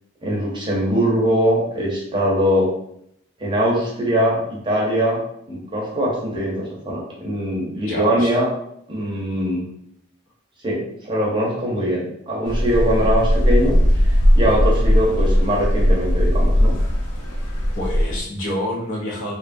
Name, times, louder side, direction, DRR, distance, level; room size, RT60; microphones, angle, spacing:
voice 1, 0.2-2.7 3.4-5.2 5.5-8.5 8.9-9.6 10.6-16.8, equal, 20° right, -4 dB, 0.6 m, -22 dB
voice 2, 7.8-8.4 17.7-19.4, left 1 dB, 70° left, -4 dB, 0.9 m, -27 dB
sound 1, 12.5-18.2, equal, 85° left, 0.5 m, -18 dB
2.7 x 2.3 x 2.6 m, 0.72 s
head